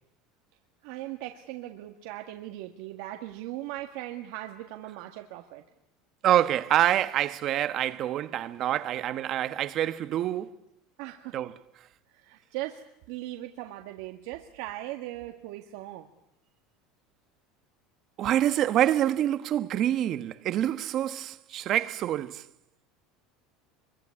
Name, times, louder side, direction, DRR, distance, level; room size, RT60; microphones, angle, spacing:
voice 1, 0.8-5.6 11.0-11.4 12.1-12.8 13.1-16.1, right 15 dB, 70° right, 1.8 m, -39 dB
voice 2, 6.2-10.6 11.3-11.9 18.2-22.5, right 12 dB, 40° right, 1.2 m, -26 dB
25.0 x 23.5 x 9.8 m
cardioid pair, 155°, 0 cm